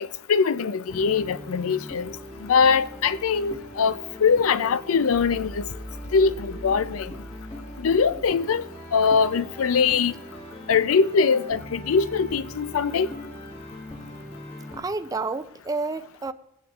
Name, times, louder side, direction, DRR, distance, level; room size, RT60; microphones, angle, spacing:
voice 1, 0.0-2.1 2.4-5.7 6.1-7.1 7.8-8.6 8.9-10.1 10.7-13.1, left 5 dB, 85° left, 0.5 m, -22 dB
sound 1, 0.9-14.8, left 1 dB, 25° left, 1.6 m, -40 dB
voice 2, 14.7-16.3, right 3 dB, 15° right, 0.3 m, -30 dB
21.5 x 9.2 x 2.4 m
head